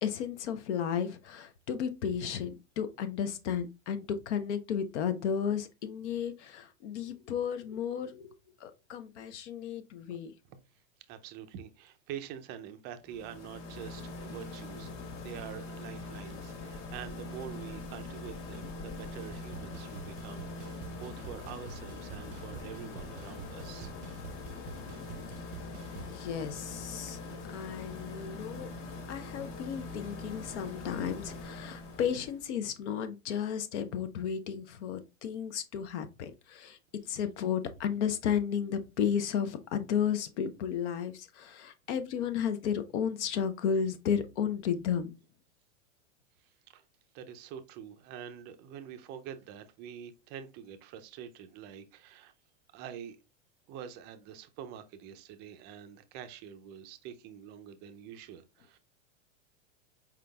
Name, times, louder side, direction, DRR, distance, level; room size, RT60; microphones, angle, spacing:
voice 1, 0.0-8.3 8.6-10.3 25.9-27.2 27.5-28.7 29.1-36.8 37.1-45.2, left 8 dB, 65° left, 0.7 m, -33 dB
voice 2, 11.1-14.9 15.2-23.9 25.0-25.2 46.4-46.8 47.1-52.3 52.7-53.2 53.7-58.8, right 9 dB, 30° right, 0.4 m, -46 dB
sound 1, 13.0-32.4, left 3 dB, 35° left, 0.8 m, -43 dB
sound 2, 19.3-26.2, right 8 dB, 90° right, 0.6 m, -48 dB
4.5 x 3.7 x 2.2 m
hypercardioid pair, 130°, 37 cm